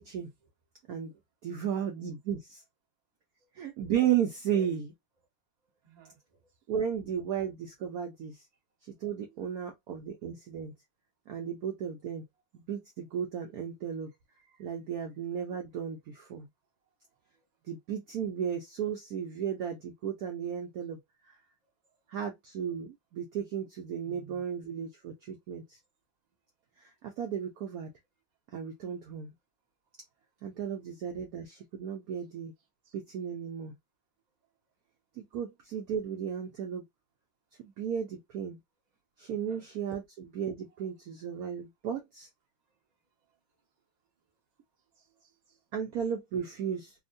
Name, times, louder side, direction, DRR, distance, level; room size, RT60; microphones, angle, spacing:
voice 1, 1.4-2.6 3.6-4.9 6.7-8.4 9.0-10.7 11.3-12.2 12.5-14.1 14.6-16.5 17.7-21.0 22.1-25.6 27.0-27.9 28.5-29.3 30.4-32.5 32.9-33.7 35.2-36.8 37.6-38.6 39.2-40.0 40.4-42.3 45.7-46.9, right 8 dB, 75° right, 0.8 m, -34 dB
voice 2, 3.6-3.9 5.8-6.4 9.4-9.5 14.5-14.7 24.0-24.4 32.8-32.9 39.5-39.7 45.0-45.6, right 10 dB, 30° right, 0.7 m, -57 dB
3.5 x 2.1 x 2.5 m
omnidirectional pair, 2.3 m